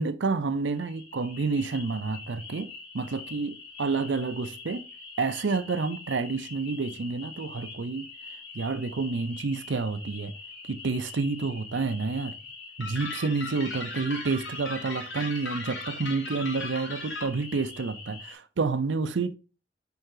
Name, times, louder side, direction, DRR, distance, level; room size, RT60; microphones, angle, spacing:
voice 1, 0.0-2.7 2.9-4.8 5.2-8.1 8.5-10.3 10.7-12.4 12.8-19.4, right 4 dB, 80° right, 0.6 m, -29 dB
sound 1, 0.7-18.3, left 4 dB, 30° left, 2.0 m, -44 dB
sound 2, 12.8-17.3, left 3 dB, 75° left, 1.9 m, -37 dB
5.4 x 4.8 x 3.8 m
head